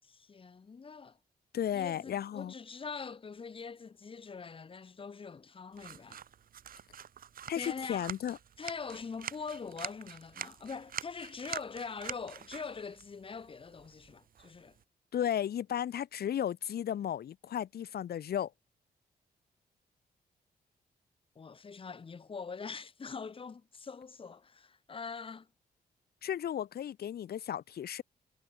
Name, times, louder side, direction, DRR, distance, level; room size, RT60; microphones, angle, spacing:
voice 1, 0.0-1.2 1.7-6.2 7.5-8.1 8.6-14.8 21.3-25.5, left 5 dB, 35° left, 6.2 m, -43 dB
voice 2, 1.5-2.5 7.5-8.4 15.1-18.5 26.2-28.0, left 10 dB, 75° left, 7.4 m, -34 dB
sound 1, 5.7-14.8, right 9 dB, 65° right, 7.8 m, -46 dB
wide cardioid pair, 155°, 16 cm